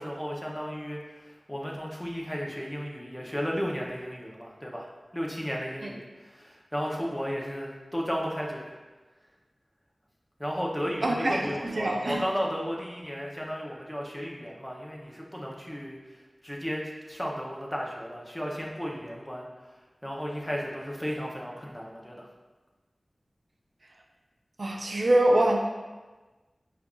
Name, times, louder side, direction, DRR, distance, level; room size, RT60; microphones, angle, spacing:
voice 1, 0.0-4.9 5.1-8.7 10.4-16.0 16.4-19.5 20.0-22.3, equal, 10° left, -2 dB, 0.6 m, -34 dB
voice 2, 11.0-12.2 24.6-25.6, right 1 dB, 60° right, 0 dB, 0.5 m, -24 dB
5.1 x 2.4 x 2.3 m, 1.2 s
wide cardioid pair, 65°, 0 cm